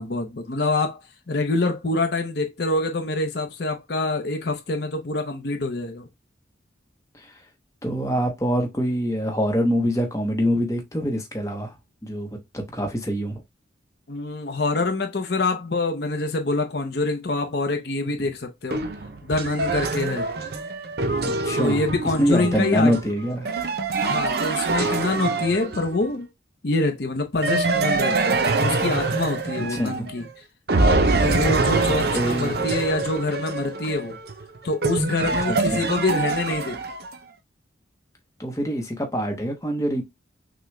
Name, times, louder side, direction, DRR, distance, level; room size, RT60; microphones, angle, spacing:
voice 1, 0.0-6.1 14.1-18.8 19.2-20.3 21.5-22.9 24.0-26.3 26.6-30.3 30.8-34.2 34.6-36.8, left 2 dB, 55° left, 0.7 m, -26 dB
voice 2, 7.8-11.7 12.0-13.4 21.2-21.8 22.2-23.5 29.6-30.1 31.8-32.6 35.5-35.8 38.4-40.0, equal, 15° left, 0.9 m, -25 dB
sound 1, 18.7-26.1 27.4-30.3 30.7-37.2, right 3 dB, 55° right, 0.6 m, -25 dB
6.0 x 2.2 x 3.2 m
head